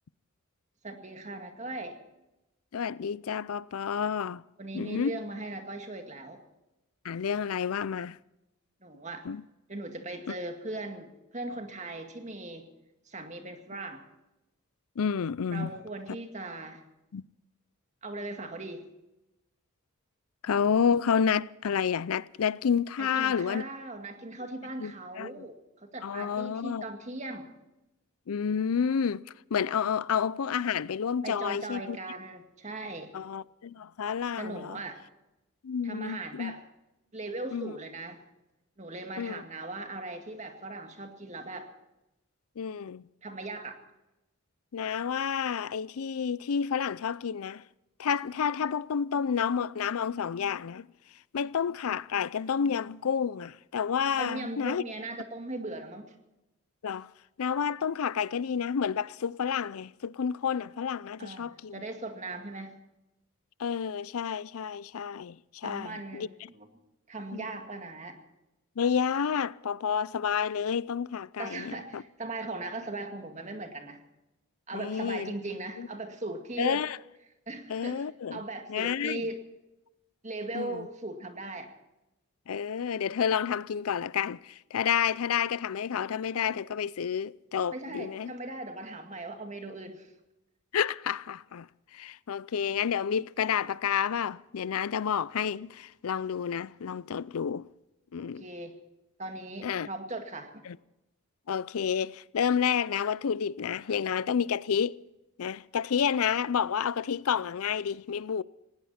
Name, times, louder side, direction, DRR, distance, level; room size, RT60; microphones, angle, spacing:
voice 1, 0.8-2.0 4.6-6.4 8.8-9.3 9.7-12.7 13.1-14.0 15.5-16.8 18.0-18.8 23.0-27.5 31.2-33.1 34.4-35.0 35.8-36.6 37.1-38.2 38.8-41.7 43.2-43.8 54.2-56.1 61.2-62.7 65.6-66.7 67.1-68.2 71.4-74.0 74.7-76.8 77.5-79.4 80.2-81.7 87.7-90.1 98.2-98.8 99.2-100.6, right 2 dB, 30° right, 2.1 m, -39 dB
voice 2, 2.7-4.4 4.7-5.2 7.0-8.2 9.2-9.4 15.0-15.7 17.1-17.2 20.4-23.6 24.8-25.4 26.0-26.8 28.3-29.2 29.5-32.0 33.1-34.8 35.6-36.5 37.5-37.7 39.2-39.4 42.6-43.0 44.7-47.6 48.0-50.9 51.3-54.8 56.8-57.1 57.4-61.8 63.6-66.3 67.3-67.5 68.8-72.0 74.7-75.3 75.8-75.9 76.6-77.0 77.7-78.4 78.7-79.3 80.5-80.9 82.5-88.3 90.7-97.7 98.1-98.4 99.6-99.9 100.7-100.8 101.5-105.0 105.4-108.4, left 7 dB, 75° left, 0.5 m, -30 dB
19.5 x 16.5 x 4.3 m
head